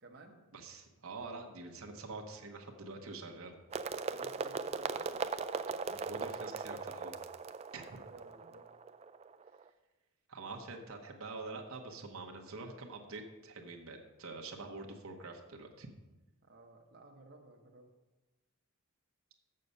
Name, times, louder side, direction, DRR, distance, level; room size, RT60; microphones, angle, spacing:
voice 1, 0.0-0.4 4.1-5.2 7.8-8.7 16.4-17.9, right 2 dB, 50° right, 0 dB, 0.9 m, -56 dB
voice 2, 0.5-3.6 5.9-7.2 7.7-8.0 10.3-15.9, right 3 dB, 70° right, 3 dB, 1.0 m, -46 dB
sound 1, 3.7-9.6, right 5 dB, 30° right, 0.3 m, -39 dB
7.5 x 6.6 x 5.4 m, 1.1 s
head